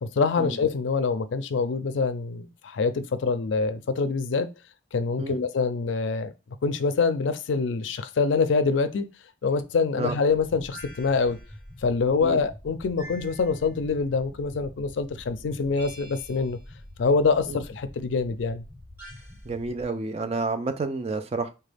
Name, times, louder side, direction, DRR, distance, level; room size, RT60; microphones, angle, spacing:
voice 1, 0.0-4.5 4.9-6.3 6.6-9.1 9.4-11.4 11.8-16.6 17.0-18.6, left 4 dB, 75° left, 0.4 m, -25 dB
sound 1, 10.4-19.8, left 1 dB, 10° left, 0.7 m, -46 dB
sound 2, 10.7-11.7 13.0-13.9 15.8-16.7 19.0-19.5, right 1 dB, 10° right, 1.3 m, -47 dB
voice 2, 19.5-21.5, right 3 dB, 35° right, 0.4 m, -30 dB
3.8 x 2.2 x 3.3 m
head